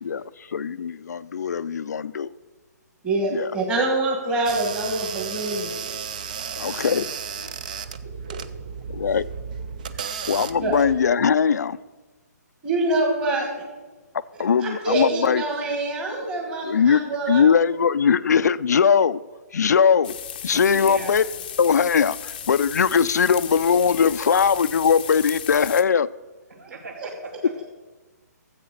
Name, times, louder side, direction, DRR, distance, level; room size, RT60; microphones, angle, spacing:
voice 1, 0.5-2.3 3.3-3.5 6.6-7.1 8.9-9.3 10.3-11.8 14.4-15.4 16.6-17.0 17.3-19.2 19.5-20.1 20.4-21.2 21.6-26.1, left 6 dB, 65° left, 0.4 m, -20 dB
voice 2, 3.0-6.1 9.9-10.3 10.6-10.7 12.6-13.5 14.6-17.6 27.0-27.1, right 2 dB, 10° right, 1.4 m, -25 dB
sound 1, 4.5-11.1, right 7 dB, 25° right, 0.4 m, -34 dB
sound 2, 20.0-25.8, left 9 dB, 30° left, 0.6 m, -36 dB
voice 3, 20.7-21.1 26.5-27.6, right 4 dB, 65° right, 3.1 m, -37 dB
13.5 x 7.9 x 6.6 m
hypercardioid pair, 175°, 10 cm